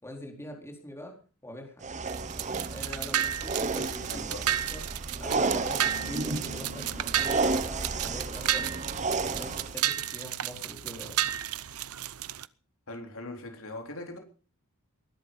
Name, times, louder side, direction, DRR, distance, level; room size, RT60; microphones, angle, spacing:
voice 1, 0.0-1.9 2.7-4.8 5.1-8.7 9.2-11.3, left 1 dB, 10° left, 4.3 m, -43 dB
sound 1, 1.8-9.8, right 3 dB, 35° right, 1.1 m, -32 dB
sound 2, 2.0-12.5, right 11 dB, 75° right, 0.8 m, -33 dB
voice 2, 3.7-4.4 12.9-14.2, left 2 dB, 65° left, 4.0 m, -41 dB
Bass guitar, 5.8-12.1, left 2 dB, 40° left, 1.2 m, -52 dB
21.0 x 11.5 x 5.6 m
head